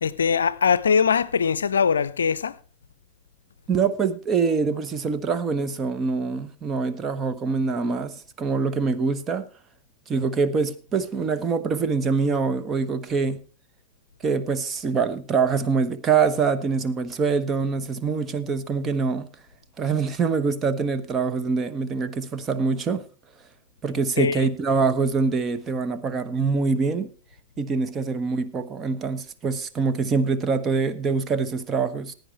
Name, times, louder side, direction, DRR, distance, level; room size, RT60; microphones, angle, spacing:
voice 1, 0.0-2.6 24.2-24.5, left 6 dB, 70° left, 0.5 m, -22 dB
voice 2, 3.7-9.5 10.1-13.4 14.2-19.3 19.8-23.1 23.8-27.1 27.6-32.1, right 5 dB, 25° right, 1.1 m, -24 dB
16.5 x 9.3 x 4.5 m
figure-of-eight pair, 90°, 0 cm